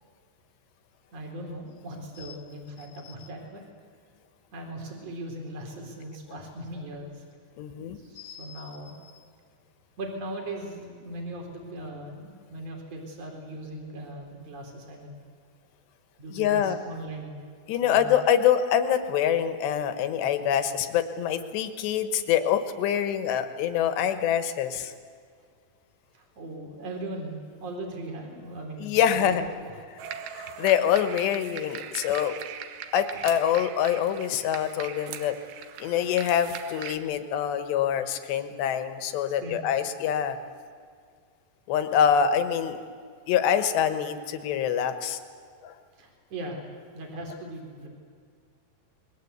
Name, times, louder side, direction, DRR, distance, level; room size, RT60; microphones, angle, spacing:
voice 1, 1.1-3.6 4.5-7.2 7.9-9.0 10.0-15.2 16.2-17.4 17.8-18.1 26.1-29.8 31.9-32.1 39.4-39.8 46.0-46.6 46.9-47.9, right 1 dB, 35° right, 1 dB, 4.9 m, -39 dB
voice 2, 7.6-8.6 16.3-16.8 17.7-24.9 28.8-29.4 30.3-32.4 32.9-35.4 35.8-40.4 41.7-42.8 43.3-45.2 45.6-45.8, left 9 dB, 75° left, 9 dB, 3.5 m, -25 dB
sound 1, 30.0-37.0, right 8 dB, 70° right, 2.7 m, -40 dB
27.5 x 21.5 x 8.2 m, 2.1 s
omnidirectional pair, 5.2 m